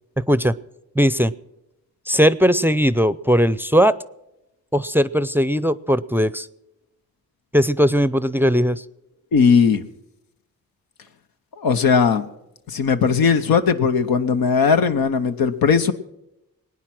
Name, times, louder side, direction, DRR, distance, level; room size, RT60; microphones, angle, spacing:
voice 1, 1.0-1.3 2.1-4.0 4.7-6.5 7.5-8.8, equal, 5° right, 16 dB, 0.5 m, -18 dB
voice 2, 9.3-9.8 11.6-12.2 12.7-15.9, left 6 dB, 90° left, 8 dB, 1.0 m, -18 dB
20.0 x 9.7 x 6.0 m, 0.89 s
cardioid pair, 65°, 35 cm